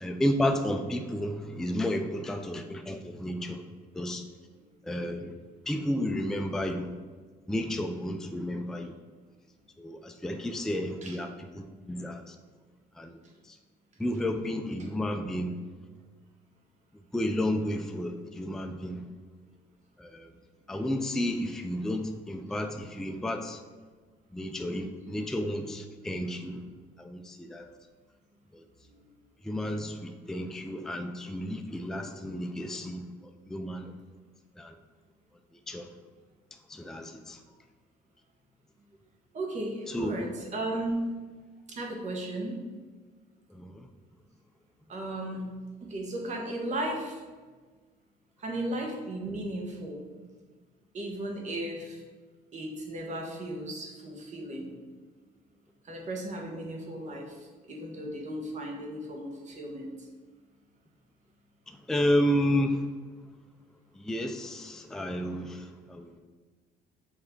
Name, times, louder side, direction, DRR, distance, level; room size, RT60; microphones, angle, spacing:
voice 1, 0.0-3.6 3.9-4.2 4.8-5.3 5.7-6.9 7.5-8.9 9.8-12.4 13.0-13.1 14.0-15.5 17.1-19.1 20.0-20.3 20.7-23.6 24.3-26.6 27.0-27.7 28.5-28.6 29.4-33.1 33.5-33.9 34.6-34.7 35.7-35.9 36.7-37.4 39.9-40.1 43.5-43.9 61.9-62.9 64.0-66.2, left 1 dB, 5° left, 5 dB, 0.4 m, -31 dB
voice 2, 39.3-41.0 41.7-42.5 44.9-45.5 45.8-47.2 48.4-50.0 50.9-52.0 52.5-54.7 55.8-57.4 57.7-59.9, right 1 dB, 45° right, 0 dB, 1.5 m, -35 dB
5.9 x 3.4 x 5.3 m, 1.4 s
cardioid pair, 110°, 17 cm